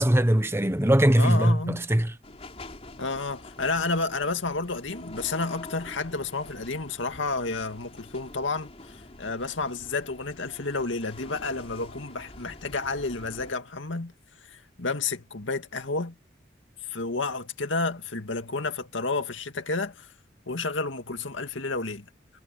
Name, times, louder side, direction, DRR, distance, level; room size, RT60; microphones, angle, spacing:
voice 1, 0.0-2.1, right 1 dB, 15° right, 1.1 m, -21 dB
voice 2, 1.2-1.9 3.0-14.1 14.5-16.1 16.9-20.1 20.5-22.0, left 3 dB, 85° left, 2.1 m, -31 dB
sound 1, 2.2-13.5, left 2 dB, 35° left, 3.7 m, -46 dB
head